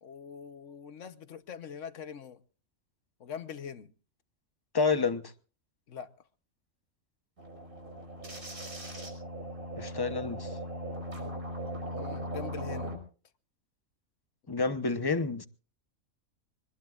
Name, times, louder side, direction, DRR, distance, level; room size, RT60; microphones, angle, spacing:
voice 1, 0.0-2.4 3.2-3.9 5.9-6.1 11.9-13.0, left 7 dB, 60° left, 1.3 m, -43 dB
voice 2, 4.7-5.2 9.8-10.5 14.5-15.5, left 4 dB, 20° left, 0.8 m, -29 dB
sound 1, 7.4-13.0, right 1 dB, 75° right, 6.1 m, -39 dB
24.5 x 20.5 x 2.5 m
omnidirectional pair, 1.5 m